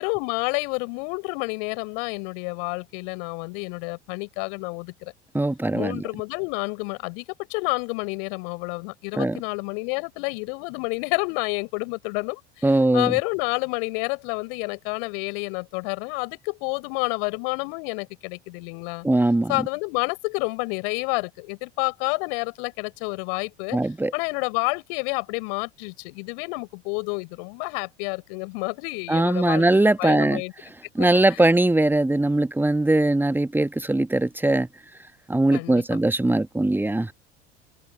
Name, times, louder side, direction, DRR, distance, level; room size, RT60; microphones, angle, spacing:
voice 1, 0.0-5.1 5.7-7.2 7.5-12.6 12.9-19.1 19.5-23.8 24.1-29.6 30.0-30.5 31.3-31.5 35.5-36.0, left 38 dB, 55° left, 6.1 m, -29 dB
voice 2, 5.3-6.1 9.1-9.4 12.6-13.2 19.0-19.6 23.7-24.1 29.1-30.7 30.9-34.7 35.3-37.1, right 2 dB, 5° right, 1.3 m, -21 dB
figure-of-eight pair, 70°, 34 cm